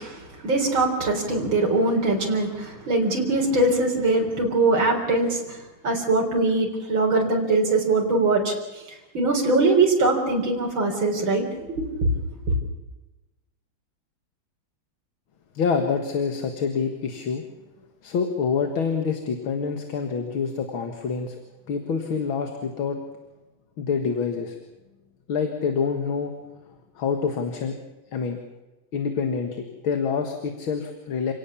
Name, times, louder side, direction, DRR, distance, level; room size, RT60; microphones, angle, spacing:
voice 1, 0.0-5.6 5.8-8.5 9.1-12.1, right 2 dB, 70° right, 0 dB, 4.6 m, -22 dB
voice 2, 15.5-17.4 18.0-21.4 21.7-23.0 23.8-24.6 25.3-26.3 27.0-27.8 28.1-28.4 28.9-31.3, left 5 dB, 75° left, 5 dB, 2.5 m, -26 dB
28.0 x 17.5 x 7.2 m, 1.1 s
omnidirectional pair, 2.3 m